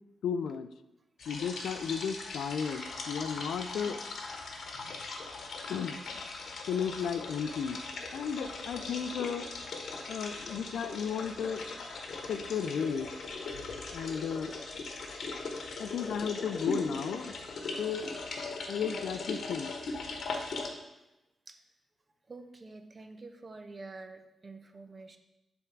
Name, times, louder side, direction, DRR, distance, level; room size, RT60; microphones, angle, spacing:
voice 1, 0.2-0.7 1.3-4.0 4.9-5.0 5.7-6.0 6.7-7.8 8.1-9.5 10.1-11.9 12.3-13.1 13.9-14.5 15.8-17.3 17.8-18.1 18.7-19.7 20.6-20.7, left 7 dB, 85° left, 11 dB, 0.3 m, -34 dB
sound 1, 1.2-20.7, left 3 dB, 70° left, 0.9 m, -39 dB
voice 2, 22.3-25.2, right 3 dB, 35° right, 7 dB, 0.6 m, -47 dB
7.0 x 3.5 x 4.5 m, 0.94 s
cardioid pair, 80°, 0 cm